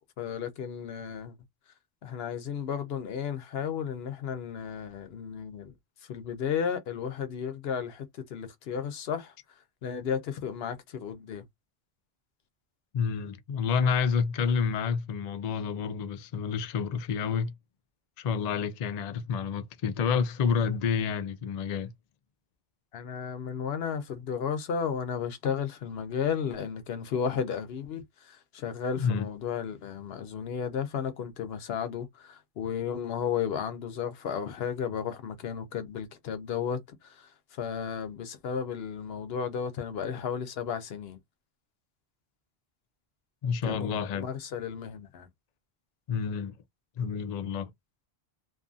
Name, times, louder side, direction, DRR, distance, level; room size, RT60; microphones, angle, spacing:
voice 1, 0.2-1.3 2.0-5.7 6.0-9.3 9.8-11.4 22.9-41.2 43.6-45.3, left 7 dB, 75° left, 0.9 m, -33 dB
voice 2, 12.9-17.5 18.2-21.9 29.0-29.3 43.4-44.3 46.1-46.6 47.0-47.7, left 6 dB, 55° left, 0.5 m, -29 dB
2.6 x 2.4 x 2.5 m
omnidirectional pair, 1.1 m